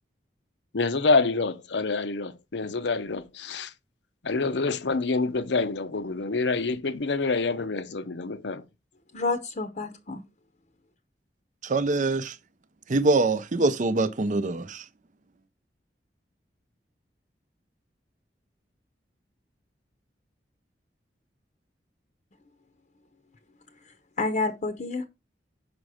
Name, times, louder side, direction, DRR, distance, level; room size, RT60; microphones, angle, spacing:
voice 1, 0.7-3.7 4.2-8.6, left 3 dB, 85° left, 0.7 m, -27 dB
voice 2, 9.1-10.2 24.2-25.0, left 3 dB, 45° left, 0.7 m, -29 dB
voice 3, 11.6-12.4 12.9-14.7, right 3 dB, 45° right, 0.6 m, -24 dB
6.0 x 5.2 x 4.9 m
head